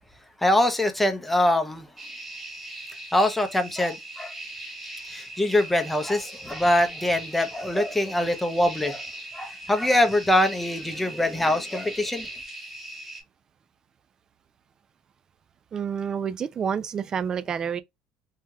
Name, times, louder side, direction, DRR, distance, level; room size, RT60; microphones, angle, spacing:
voice 1, 0.4-1.9 3.1-4.3 5.1-9.0 9.3-12.3, left 1 dB, 5° left, 0.6 m, -23 dB
sound 1, 2.0-13.2, right 1 dB, 10° right, 1.2 m, -40 dB
voice 2, 15.7-17.8, right 7 dB, 35° right, 0.3 m, -28 dB
3.1 x 2.8 x 2.3 m
cardioid pair, 115°, 2 cm